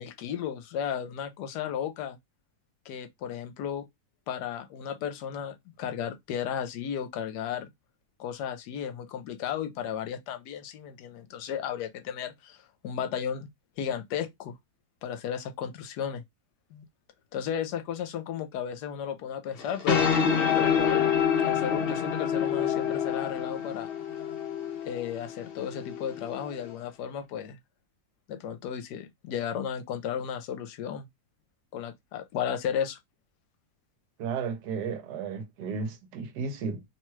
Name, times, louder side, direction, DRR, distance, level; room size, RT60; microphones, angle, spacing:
voice 1, 0.0-2.2 2.9-3.8 4.3-7.7 8.2-13.5 13.8-14.5 15.0-16.2 16.7-16.8 17.3-20.0 20.6-21.1 21.4-23.9 24.8-27.6 28.3-31.1 31.7-33.0, left 8 dB, 80° left, 1.1 m, -34 dB
sound 1, 19.6-26.7, left 7 dB, 60° left, 0.6 m, -27 dB
voice 2, 34.2-36.8, right 5 dB, 80° right, 1.2 m, -33 dB
2.9 x 2.2 x 3.0 m
omnidirectional pair, 1.8 m